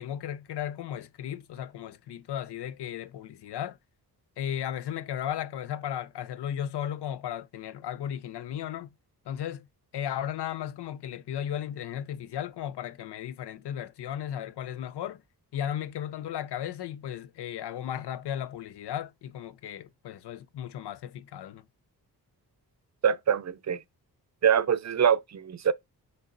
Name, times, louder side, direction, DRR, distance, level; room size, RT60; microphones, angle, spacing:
voice 1, 0.0-3.8 4.4-8.9 9.3-9.7 9.9-15.2 15.5-21.6, left 10 dB, 80° left, 0.7 m, -35 dB
voice 2, 23.0-23.8 24.4-25.7, right 8 dB, 45° right, 0.6 m, -24 dB
6.6 x 5.3 x 4.0 m
cardioid pair, 90°, 40 cm